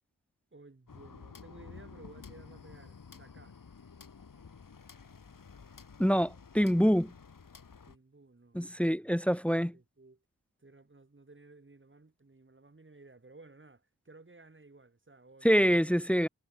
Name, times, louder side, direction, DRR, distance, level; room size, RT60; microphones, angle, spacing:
voice 1, 0.5-3.6 7.8-9.2 9.4-10.2 10.6-16.0, right 3 dB, 35° right, 7.3 m, -56 dB
sound 1, 0.9-8.0, left 5 dB, 70° left, 2.9 m, -52 dB
voice 2, 6.0-7.1 8.5-9.7 15.4-16.3, equal, 5° left, 0.8 m, -25 dB
wide cardioid pair, 100°, 34 cm